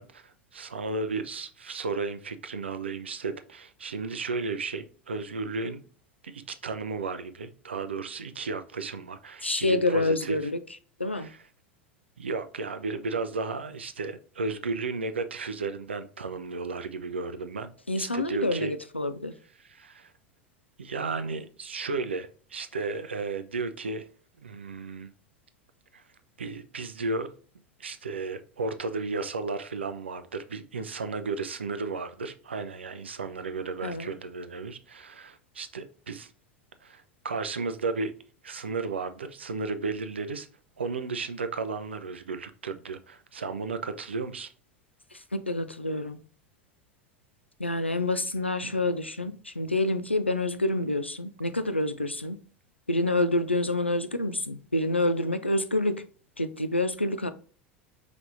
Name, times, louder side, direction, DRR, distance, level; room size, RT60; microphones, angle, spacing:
voice 1, 0.0-5.8 6.2-10.4 11.1-11.4 12.2-17.7 18.0-18.7 19.7-20.1 20.8-24.1 24.4-25.1 25.9-26.0 26.4-27.3 27.8-36.3 36.8-38.1 38.4-40.5 40.8-44.5 48.6-48.8, right 4 dB, 75° right, 0.4 m, -34 dB
voice 2, 9.4-10.6 11.0-11.3 17.9-19.3 33.8-34.1 45.1-46.2 47.6-52.4 52.9-56.0 56.4-57.3, left 2 dB, 90° left, 0.4 m, -27 dB
4.9 x 3.3 x 2.5 m
figure-of-eight pair, 75°, 6 cm